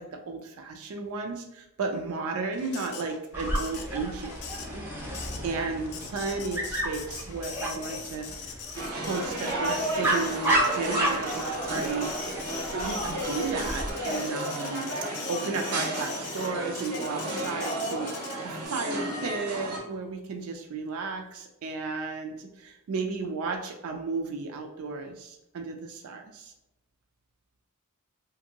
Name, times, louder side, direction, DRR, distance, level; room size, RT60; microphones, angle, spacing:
voice 1, 0.0-8.6 8.9-12.4 12.7-14.9 15.3-26.5, right 4 dB, 70° right, 3 dB, 0.4 m, -34 dB
Printer, 2.5-18.7, left 6 dB, 75° left, 0.4 m, -42 dB
Dog, 3.3-13.9, right 1 dB, 10° right, 0.4 m, -32 dB
sound 1, 8.7-19.8, right 1 dB, 90° right, 0.7 m, -32 dB
2.5 x 2.5 x 2.8 m, 0.89 s
head